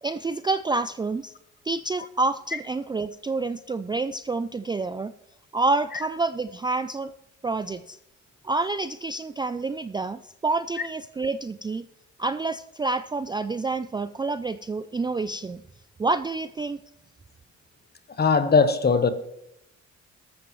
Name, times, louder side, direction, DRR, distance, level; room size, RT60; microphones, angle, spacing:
voice 1, 0.0-1.3 1.6-5.1 5.5-7.1 7.4-8.0 8.4-11.8 12.2-15.6 16.0-16.8, right 3 dB, 15° right, 0.3 m, -28 dB
voice 2, 18.2-19.1, left 4 dB, 30° left, 1.1 m, -20 dB
14.0 x 13.0 x 3.1 m
cardioid pair, 90°, 30 cm